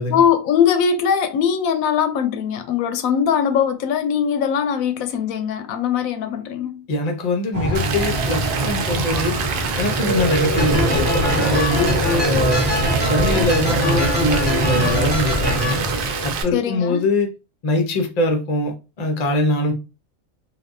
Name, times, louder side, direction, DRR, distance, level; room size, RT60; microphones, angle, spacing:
voice 1, 0.1-6.9 16.5-17.0, left 8 dB, 90° left, 1.0 m, -21 dB
voice 2, 6.9-9.4 9.8-12.7 13.0-15.8 16.2-17.3 17.6-19.7, left 2 dB, 40° left, 0.6 m, -22 dB
sound 1, 7.5-16.5, right 1 dB, 35° right, 0.9 m, -23 dB
Rain, 7.7-16.4, right 6 dB, 80° right, 1.0 m, -28 dB
sound 2, 10.6-15.7, left 1 dB, 10° left, 1.0 m, -24 dB
3.4 x 2.6 x 2.5 m
omnidirectional pair, 1.4 m